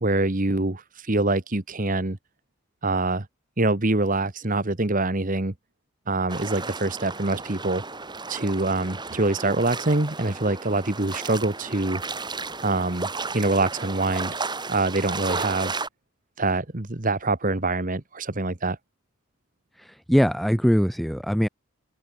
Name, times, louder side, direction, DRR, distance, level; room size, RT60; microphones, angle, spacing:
voice 1, 0.0-2.2 2.8-3.3 3.6-5.5 6.1-7.8 8.3-12.0 12.6-13.1 13.3-14.4 14.7-15.7 16.4-18.8, right 2 dB, 35° right, 1.4 m, -25 dB
sound 1, 6.3-15.9, right 4 dB, 20° right, 4.1 m, -34 dB
voice 2, 19.8-21.5, equal, ahead, 0.6 m, -22 dB
open air
head